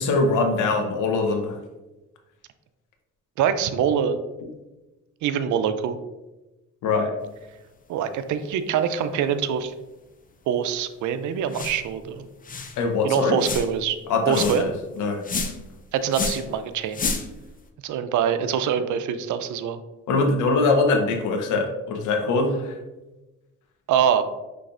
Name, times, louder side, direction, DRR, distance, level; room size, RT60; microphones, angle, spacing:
voice 1, 0.0-1.6 6.8-7.1 12.8-13.4 14.1-15.2 20.1-22.7, left 3 dB, 85° left, 3 dB, 0.8 m, -22 dB
voice 2, 3.4-4.2 5.2-6.0 7.9-9.7 10.5-12.2 13.0-14.0 14.3-14.7 15.9-17.0 17.8-19.8 23.9-24.2, right 8 dB, 75° right, 10 dB, 0.5 m, -24 dB
sound 1, 11.5-11.9 12.2-12.3 12.4-12.8 13.4-13.8 14.3-14.7 15.2-15.7 16.1-16.5 16.9-17.4, left 4 dB, 30° left, 0.5 m, -29 dB
5.8 x 3.3 x 2.5 m, 1.1 s
cardioid pair, 90°, 30 cm